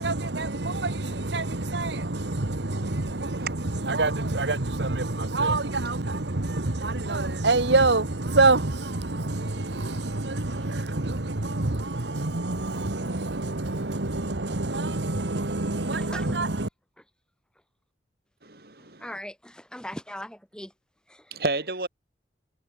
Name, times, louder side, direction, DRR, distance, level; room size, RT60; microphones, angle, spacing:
voice 1, 0.0-16.7, right 2 dB, 80° right, 1.6 m, -26 dB
voice 2, 18.4-19.2 21.3-21.9, right 3 dB, 55° right, 2.6 m, -31 dB
voice 3, 19.0-20.7 21.1-21.2, left 1 dB, 5° left, 3.7 m, -39 dB
head